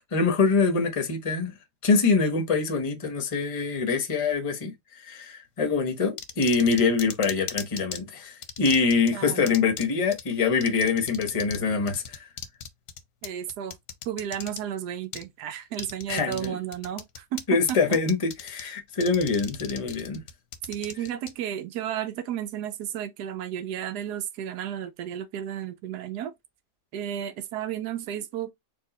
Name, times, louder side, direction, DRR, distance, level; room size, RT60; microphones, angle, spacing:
voice 1, 0.1-1.5 1.8-4.7 5.0-12.3 16.1-16.6 17.5-20.2, left 4 dB, 25° left, 0.8 m, -24 dB
sound 1, 6.2-8.0 8.4-9.1 9.5-9.8 10.1-10.2 10.6-11.6 11.9-14.6 15.1-15.2 15.7-16.5 16.7-17.4 17.7-18.6 18.9-21.3, left 8 dB, 60° left, 1.0 m, -37 dB
voice 2, 9.1-9.5 13.2-13.8 14.1-18.0 20.7-26.3 26.9-28.5, right 10 dB, 90° right, 1.2 m, -33 dB
4.6 x 2.7 x 4.1 m
omnidirectional pair, 1.7 m